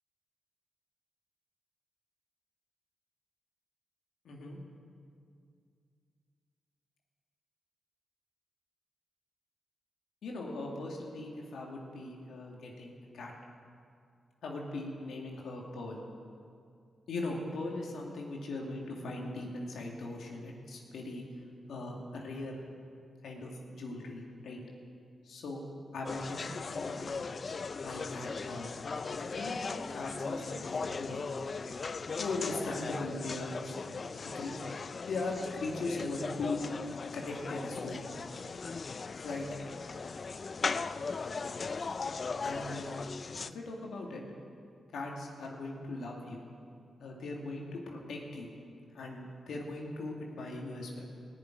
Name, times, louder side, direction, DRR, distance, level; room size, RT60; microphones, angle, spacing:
voice 1, 4.2-4.6 10.2-13.3 14.4-16.0 17.1-21.2 21.7-22.6 23.2-24.6 25.2-25.6 25.9-27.3 27.8-28.7 29.0-29.6 29.9-31.2 32.2-33.7 34.2-34.5 35.0-36.6 37.1-38.0 39.2-39.5 42.4-42.9 43.4-44.2 44.9-46.4 47.0-48.5 48.9-51.1, left 2 dB, 80° left, -1 dB, 2.4 m, -39 dB
sound 1, 26.1-43.5, left 4 dB, 50° left, 0.5 m, -38 dB
19.0 x 7.1 x 9.5 m, 2.3 s
cardioid pair, 60°, 0 cm